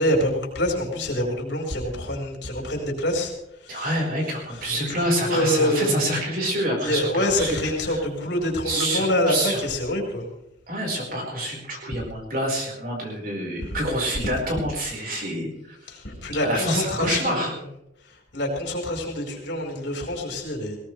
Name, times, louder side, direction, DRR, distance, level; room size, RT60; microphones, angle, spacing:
voice 1, 0.0-3.3 3.6-3.9 4.5-6.1 6.8-10.2 13.6-13.8 15.9-17.7 18.1-20.8, left 1 dB, 70° left, 1 dB, 4.6 m, -26 dB
voice 2, 3.7-7.6 7.8-8.0 8.6-9.6 10.7-16.0 16.4-17.5, right 1 dB, 50° right, -1 dB, 5.0 m, -27 dB
20.0 x 18.0 x 3.4 m, 0.84 s
head